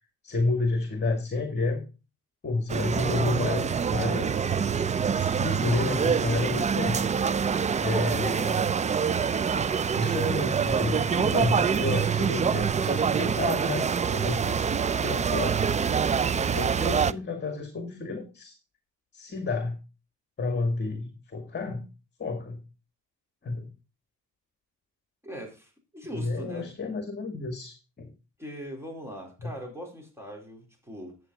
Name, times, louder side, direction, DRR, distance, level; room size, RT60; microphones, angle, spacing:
voice 1, 0.2-1.8 2.4-4.6 5.1-7.0 7.8-8.6 10.0-14.7 15.0-15.6 16.3-18.5 19.1-19.8 20.4-21.9 22.2-22.6 23.4-23.7 26.1-28.1 29.4-29.5, left 3 dB, 35° left, 2.0 m, -30 dB
sound 1, 2.7-17.1, right 6 dB, 25° right, 0.4 m, -25 dB
voice 2, 25.2-26.7 28.4-31.2, equal, 10° right, 4.0 m, -41 dB
10.0 x 7.8 x 4.1 m
cardioid pair, 90°, 30 cm